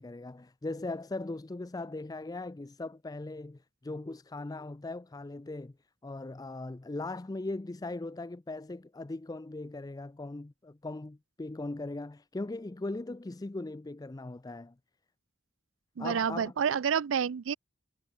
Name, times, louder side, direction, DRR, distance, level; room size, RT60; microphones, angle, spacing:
voice 1, 0.0-5.7 6.0-14.7 16.0-16.5, left 2 dB, 20° left, 0.4 m, -39 dB
voice 2, 16.0-17.5, right 7 dB, 80° right, 0.4 m, -29 dB
head